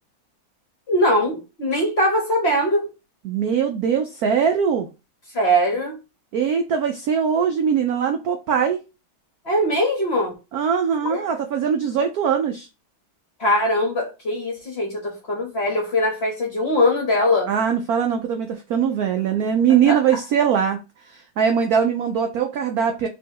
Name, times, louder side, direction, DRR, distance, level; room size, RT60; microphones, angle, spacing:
voice 1, 0.9-2.9 5.3-6.0 9.4-10.3 11.1-11.2 13.4-17.5 19.8-20.0, equal, 40° left, 0.9 m, -21 dB
voice 2, 3.2-4.9 6.3-8.8 10.5-12.7 17.5-20.8 21.1-23.1, right 7 dB, 85° right, 0.8 m, -21 dB
3.3 x 3.0 x 4.5 m
omnidirectional pair, 2.3 m